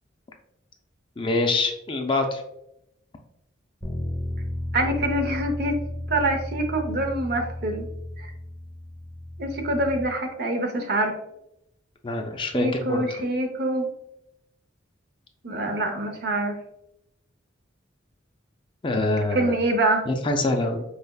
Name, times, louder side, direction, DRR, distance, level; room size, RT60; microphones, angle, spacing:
voice 1, 1.2-2.4 12.0-13.2 18.8-19.6 20.1-20.8, left 2 dB, 25° left, 4 dB, 0.4 m, -25 dB
Bass guitar, 3.8-10.1, left 1 dB, 10° left, 0.8 m, -33 dB
voice 2, 4.7-5.8 6.1-7.9 8.2-8.3 9.4-11.2 12.5-13.9 15.4-16.6 19.3-20.0, right 1 dB, 55° right, 5 dB, 0.6 m, -25 dB
4.6 x 3.3 x 2.2 m, 0.82 s
head